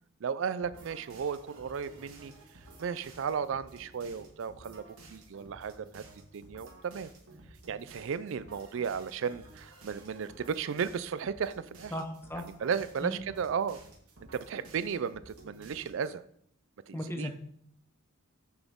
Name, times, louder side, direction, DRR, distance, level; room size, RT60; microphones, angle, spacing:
voice 1, 0.2-2.3 2.8-4.8 5.1-6.0 6.3-7.1 7.7-11.9 12.3-13.8 14.3-16.2 16.9-17.3, right 6 dB, 60° right, 15 dB, 0.4 m, -34 dB
sound 1, 0.6-16.1, right 2 dB, 85° right, 1.6 m, -53 dB
voice 2, 11.9-12.4 13.0-13.2 16.9-17.3, left 1 dB, 10° left, 4 dB, 0.7 m, -36 dB
6.7 x 6.1 x 3.6 m, 0.68 s
head